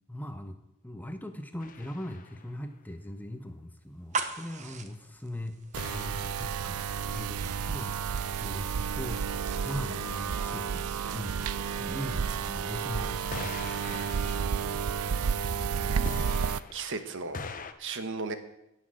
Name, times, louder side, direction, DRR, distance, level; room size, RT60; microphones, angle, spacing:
voice 1, 0.1-0.6 0.8-5.6 5.9-7.9 8.3-9.2 9.6-11.5 11.8-15.2, left 1 dB, 10° left, 7 dB, 0.9 m, -40 dB
sound 1, 1.6-2.6 5.8-6.9 13.3-15.6 16.1-17.7, left 4 dB, 35° left, 0.8 m, -43 dB
sound 2, 3.9-13.6, right 4 dB, 35° right, 1.0 m, -43 dB
sound 3, 5.7-16.6, right 6 dB, 80° right, 0.5 m, -31 dB
voice 2, 15.8-17.4 17.8-18.3, right 4 dB, 55° right, 9 dB, 1.2 m, -37 dB
17.0 x 6.4 x 7.6 m, 0.88 s
head